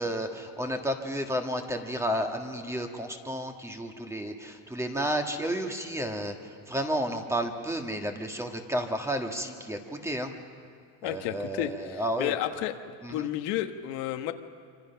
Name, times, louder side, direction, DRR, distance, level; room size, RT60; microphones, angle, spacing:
voice 1, 0.0-6.3 6.7-10.3 11.0-12.4 13.0-13.3, equal, 5° right, 3 dB, 1.7 m, -32 dB
voice 2, 11.0-12.7 13.1-14.3, left 13 dB, 70° left, 6 dB, 1.4 m, -32 dB
26.0 x 25.5 x 5.8 m, 2.3 s
cardioid pair, 140°, 42 cm